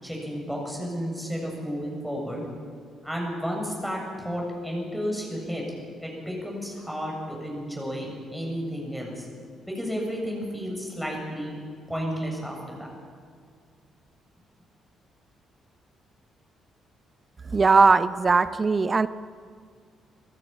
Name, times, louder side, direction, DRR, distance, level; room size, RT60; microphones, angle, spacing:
voice 1, 0.0-2.5 3.0-5.7 6.0-9.3 9.7-11.5 11.9-12.9, equal, ahead, -1 dB, 7.3 m, -32 dB
voice 2, 17.5-19.1, right 4 dB, 35° right, 14 dB, 0.8 m, -19 dB
27.0 x 14.0 x 9.1 m, 2.1 s
figure-of-eight pair, 40°, 0 cm